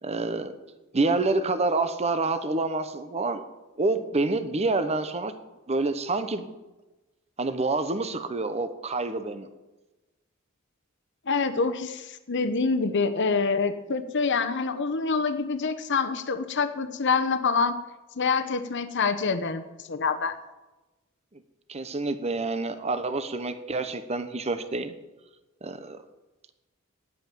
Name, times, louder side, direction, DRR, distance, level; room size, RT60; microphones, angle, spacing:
voice 1, 0.0-0.5 0.9-3.4 3.8-5.3 5.7-6.5 7.4-9.5 21.7-24.9 25.6-26.0, right 3 dB, 30° right, 10 dB, 0.8 m, -27 dB
voice 2, 11.3-17.7 18.2-20.4, left 4 dB, 60° left, 9 dB, 0.9 m, -26 dB
10.0 x 8.7 x 9.1 m, 1.1 s
head